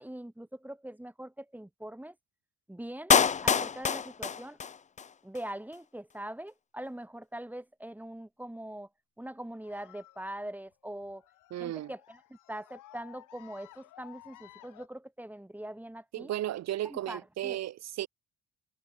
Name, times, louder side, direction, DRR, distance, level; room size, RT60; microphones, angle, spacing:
voice 1, 0.0-2.1 2.7-3.1 3.4-4.6 5.2-8.9 9.2-11.2 11.6-16.3 16.8-17.6, right 1 dB, 5° right, 2.5 m, -42 dB
Clapping, 3.1-5.1 5.4-5.5, left 6 dB, 25° left, 0.5 m, -26 dB
sound 1, 9.6-14.9, left 16 dB, 90° left, 4.7 m, -55 dB
voice 2, 11.5-11.9 16.1-18.1, right 13 dB, 60° right, 0.6 m, -34 dB
cardioid pair, 90°, 30 cm